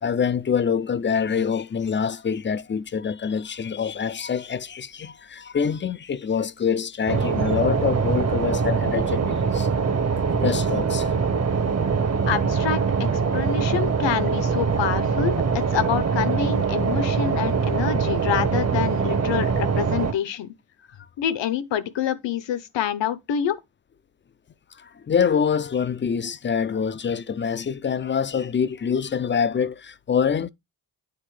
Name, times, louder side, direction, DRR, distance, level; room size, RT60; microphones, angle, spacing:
voice 1, 0.0-9.7 10.3-11.2 24.7-30.5, left 7 dB, 30° left, 0.4 m, -25 dB
sound 1, 7.1-20.1, right 5 dB, 35° right, 0.9 m, -23 dB
voice 2, 12.3-12.8 13.3-20.5 21.2-23.6, left 9 dB, 75° left, 0.9 m, -27 dB
9.3 x 4.1 x 3.2 m
cardioid pair, 85°, 44 cm